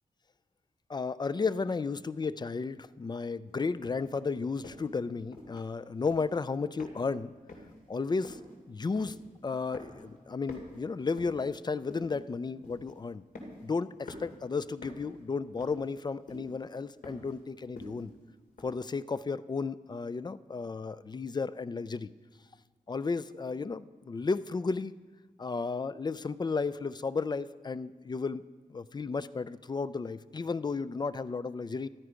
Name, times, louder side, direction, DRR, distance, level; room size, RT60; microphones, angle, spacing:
voice 1, 0.9-7.3 7.9-8.4 8.7-9.2 9.4-13.2 13.6-18.1 18.6-22.1 22.9-24.9 25.4-28.4 28.7-31.9, left 4 dB, 30° left, 16 dB, 0.4 m, -33 dB
sound 1, 3.8-4.1 4.6-4.9 5.3-5.7 6.0-6.4 6.8-7.2 7.5-7.8 8.2-8.6 8.9-9.4 9.7-10.2 10.4-11.5 11.9-12.2 12.6-12.9 13.4-13.7 14.1-14.4 14.8-15.1 15.6-16.0 16.3-16.5 17.0-17.4 17.8-18.1 18.6-18.7, left 2 dB, 80° left, 2.6 m, -47 dB
14.0 x 12.5 x 5.1 m, 1.4 s
wide cardioid pair, 125°, 15 cm